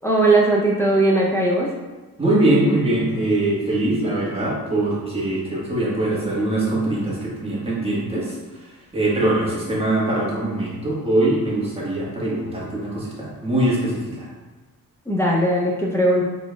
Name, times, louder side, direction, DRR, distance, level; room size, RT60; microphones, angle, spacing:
voice 1, 0.0-1.7 15.1-16.2, right 1 dB, 5° left, -4 dB, 0.5 m, -18 dB
voice 2, 2.2-8.4 8.9-14.3, right 1 dB, 15° right, -7 dB, 1.4 m, -22 dB
4.4 x 4.0 x 2.3 m, 1.2 s
cardioid pair, 110°, 35 cm